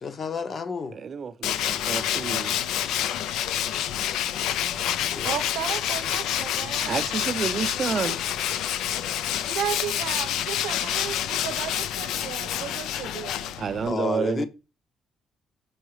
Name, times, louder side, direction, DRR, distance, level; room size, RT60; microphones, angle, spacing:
voice 1, 0.0-1.0 5.0-5.3 13.9-14.5, left 5 dB, 45° left, 0.8 m, -31 dB
voice 2, 0.9-2.6 3.2-3.5 6.9-8.2 13.6-14.5, right 6 dB, 50° right, 0.5 m, -29 dB
Tools, 1.4-13.9, left 11 dB, 90° left, 0.3 m, -28 dB
voice 3, 5.2-7.0 9.5-13.5, right 10 dB, 90° right, 0.7 m, -34 dB
6.3 x 4.7 x 3.1 m
cardioid pair, 90°, 0 cm